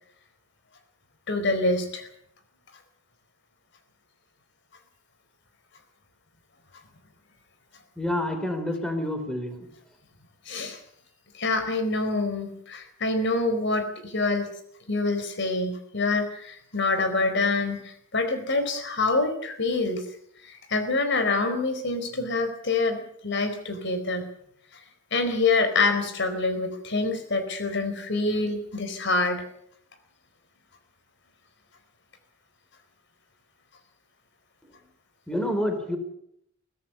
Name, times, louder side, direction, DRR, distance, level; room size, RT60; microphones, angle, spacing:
voice 1, 1.3-2.1 10.5-10.8 11.3-14.5 14.9-20.0 20.4-24.3 25.1-29.4, left 3 dB, 65° left, 8 dB, 4.4 m, -26 dB
voice 2, 8.0-9.7 35.3-36.0, left 1 dB, 5° left, 6 dB, 4.2 m, -28 dB
23.5 x 16.5 x 7.0 m, 0.69 s
head